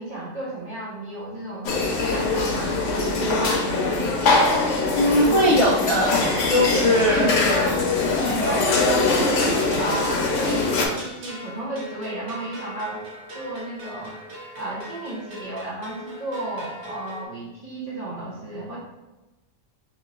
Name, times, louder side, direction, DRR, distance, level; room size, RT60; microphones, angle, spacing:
voice 1, 0.0-4.1 6.7-13.0 13.3-14.2 14.5-18.8, right 1 dB, 40° right, -5 dB, 0.7 m, -33 dB
sound 1, 1.6-10.9, left 3 dB, 70° left, 0.9 m, -22 dB
voice 2, 4.9-6.2 6.4-7.3 8.2-8.4, left 1 dB, 55° left, -4 dB, 0.3 m, -20 dB
sound 2, 6.2-17.2, equal, 60° right, 1.0 m, -40 dB
3.0 x 2.9 x 3.7 m, 1.1 s
omnidirectional pair, 1.4 m